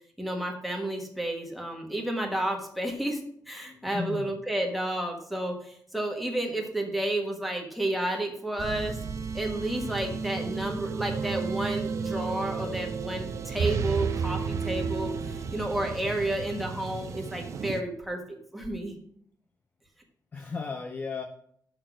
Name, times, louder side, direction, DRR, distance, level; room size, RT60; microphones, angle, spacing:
voice 1, 0.2-3.2 3.5-9.0 9.3-18.9, right 1 dB, ahead, 1 dB, 1.3 m, -31 dB
voice 2, 3.6-4.3 10.1-10.4 20.3-21.2, left 4 dB, 25° left, 5 dB, 0.5 m, -36 dB
sound 1, 8.6-17.8, right 5 dB, 45° right, 0.5 m, -32 dB
6.5 x 5.9 x 6.1 m, 0.66 s
wide cardioid pair, 175°, 7 cm